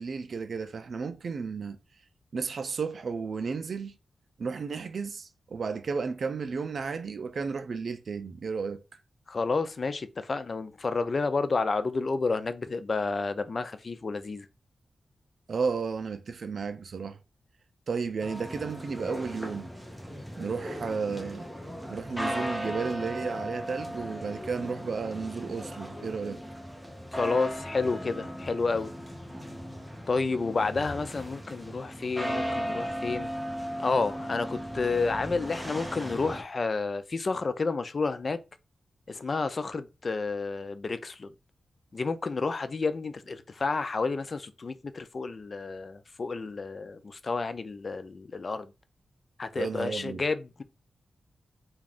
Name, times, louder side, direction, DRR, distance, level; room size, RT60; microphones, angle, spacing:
voice 1, 0.0-1.8 2.3-4.0 4.4-8.8 15.5-17.2 17.9-19.7 20.4-21.5 21.9-26.4 49.6-50.2, right 5 dB, 65° right, 0.4 m, -33 dB
voice 2, 9.3-14.5 27.1-28.9 30.1-33.3 33.8-38.4 39.1-41.3 41.9-48.7 49.4-50.6, left 4 dB, 50° left, 0.3 m, -30 dB
sound 1, 18.2-36.4, equal, ahead, 0.7 m, -37 dB
2.4 x 2.3 x 3.3 m
cardioid pair, 75°, 0 cm